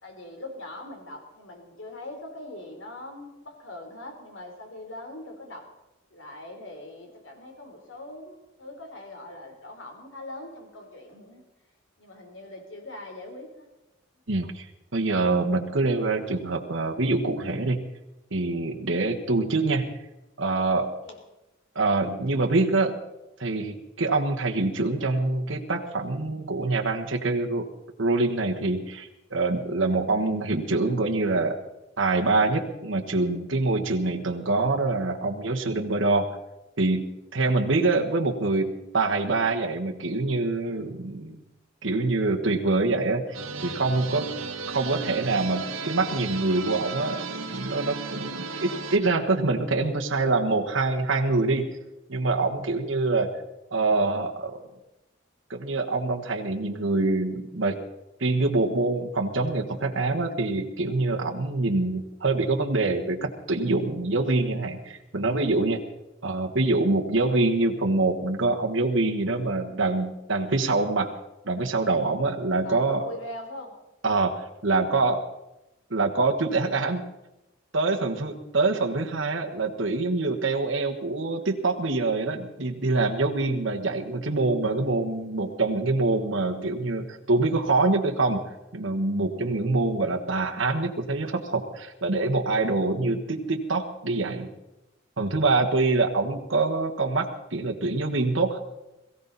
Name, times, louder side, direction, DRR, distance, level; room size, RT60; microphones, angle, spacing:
voice 1, 0.0-5.7 6.1-11.4 12.0-13.7 21.0-21.2 72.6-73.8, left 1 dB, 65° left, 3 dB, 3.6 m, -41 dB
voice 2, 14.3-14.7 14.9-17.8 18.3-19.9 20.4-20.9 21.7-23.0 23.4-27.7 28.0-31.6 32.0-36.3 36.8-37.0 37.3-41.4 41.8-43.4 43.6-44.3 44.7-51.8 52.1-53.3 53.7-54.6 55.5-57.7 58.2-65.8 66.2-71.1 71.4-73.1 74.0-75.2 75.9-77.0 77.7-88.4 88.7-94.5 95.2-98.6, right 3 dB, 65° right, 2 dB, 1.4 m, -25 dB
sound 1, 43.3-49.0, right 4 dB, 90° right, 1.4 m, -35 dB
22.0 x 15.5 x 4.1 m, 0.95 s
head